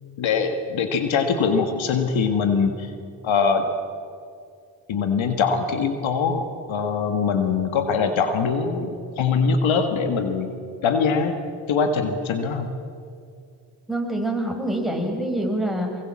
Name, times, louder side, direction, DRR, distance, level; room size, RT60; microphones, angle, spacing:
voice 1, 0.2-2.9 3.2-3.7 4.9-10.6 10.8-11.4 11.7-12.8, left 5 dB, 80° left, 7 dB, 1.8 m, -22 dB
voice 2, 13.9-16.0, right 1 dB, ahead, 2 dB, 6.2 m, -25 dB
23.5 x 22.0 x 7.5 m, 2.4 s
supercardioid pair, 45°, 46 cm